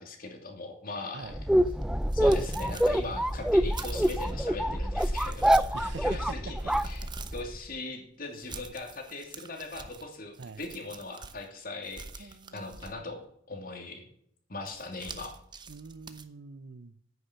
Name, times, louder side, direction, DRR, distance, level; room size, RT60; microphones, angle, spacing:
voice 1, 0.0-1.4 2.1-13.2 13.5-14.1 14.5-15.3, left 3 dB, 50° left, 2.7 m, -40 dB
sound 1, 1.3-7.6, equal, 5° right, 0.4 m, -26 dB
sound 2, 1.7-4.4 4.9-5.9 6.3-7.5 8.3-11.5 11.8-13.2 14.6-16.2, right 5 dB, 25° right, 0.9 m, -47 dB
voice 2, 5.7-6.7 10.4-10.6 12.2-13.1 15.7-17.0, right 4 dB, 60° right, 0.7 m, -44 dB
9.6 x 9.5 x 6.8 m
head